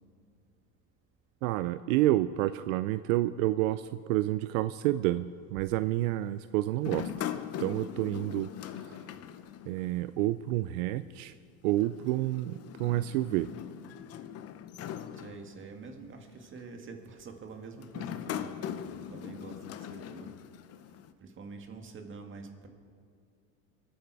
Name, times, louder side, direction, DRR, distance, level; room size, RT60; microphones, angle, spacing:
voice 1, 1.4-7.1 7.6-8.5 8.8-9.0 9.7-11.3 11.6-13.5, right 15 dB, 75° right, 13 dB, 0.5 m, -29 dB
sound 1, 6.8-10.2 10.4-10.5 11.7-15.9 16.6-16.9 17.8-21.1, left 9 dB, 35° left, 0.8 m, -40 dB
voice 2, 15.2-18.8 19.1-20.4 21.2-22.7, right 4 dB, 30° right, 4 dB, 1.9 m, -46 dB
24.5 x 9.0 x 4.8 m, 2.3 s
supercardioid pair, 120°, 40 cm